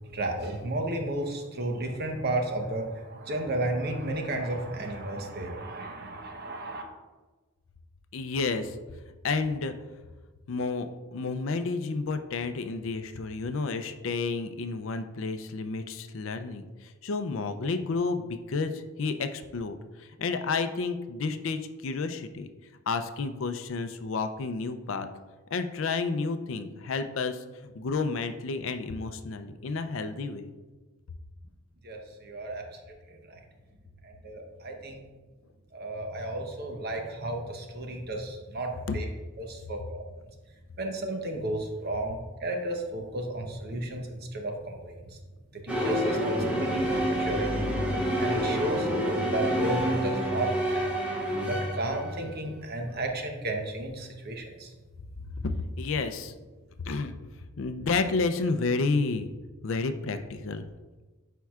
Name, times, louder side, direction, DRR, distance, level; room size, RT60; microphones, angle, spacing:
voice 1, 0.0-6.8 31.8-33.4 34.0-35.0 35.7-39.1 39.4-40.0 40.8-45.2 45.5-47.6 48.2-48.9 49.3-50.9 51.4-54.7, right 1 dB, 50° right, 3 dB, 0.8 m, -33 dB
voice 2, 8.1-8.8 9.2-9.7 10.5-22.5 22.9-25.1 25.5-30.5 38.9-39.0 55.4-56.3 56.8-57.1 57.6-59.3 59.6-60.6, left 4 dB, 65° left, 9 dB, 0.5 m, -31 dB
sound 1, 45.7-52.2, equal, 5° right, 1.0 m, -28 dB
10.5 x 4.5 x 2.4 m, 1.2 s
head